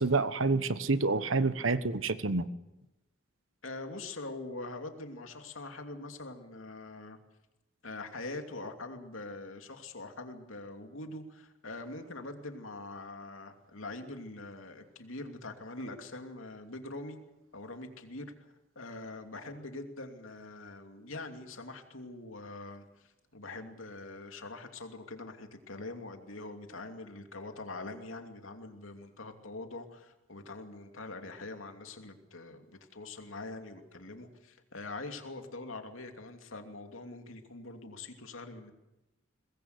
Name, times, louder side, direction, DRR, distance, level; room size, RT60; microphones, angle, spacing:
voice 1, 0.0-2.5, right 3 dB, 80° right, 14 dB, 1.2 m, -28 dB
voice 2, 3.6-7.2 7.8-17.2 17.5-18.3 18.7-38.7, left 2 dB, 90° left, 5 dB, 2.8 m, -43 dB
23.5 x 20.0 x 8.1 m, 0.96 s
head